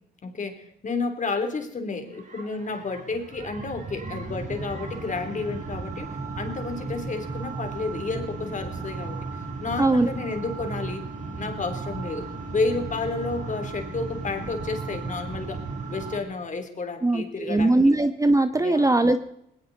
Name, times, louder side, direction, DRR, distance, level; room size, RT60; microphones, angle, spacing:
voice 1, 0.2-9.2 9.6-11.0 11.4-15.6 15.9-17.8 18.6-18.9, left 3 dB, 40° left, 7 dB, 3.2 m, -31 dB
sound 1, 2.1-16.2, right 4 dB, 40° right, 3.3 m, -35 dB
voice 2, 9.8-10.1 17.0-19.2, right 2 dB, 15° right, 10 dB, 1.0 m, -20 dB
19.5 x 18.5 x 4.1 m, 0.75 s
cardioid pair, 90°, 20 cm